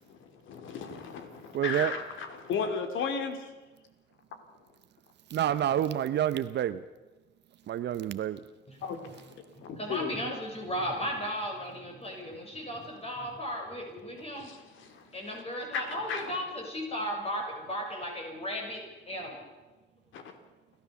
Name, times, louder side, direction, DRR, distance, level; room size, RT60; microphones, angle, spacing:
voice 1, 0.1-3.5 8.8-9.0 9.4-10.1 14.3-15.4 15.7-16.4 20.1-20.4, left 6 dB, 80° left, 3.0 m, -36 dB
voice 2, 1.5-1.9 5.3-6.8 7.7-8.5, right 11 dB, 60° right, 0.7 m, -28 dB
voice 3, 9.6-14.5 15.1-19.4, equal, 30° left, 6.0 m, -36 dB
29.5 x 12.5 x 7.0 m
cardioid pair, 100°, 20 cm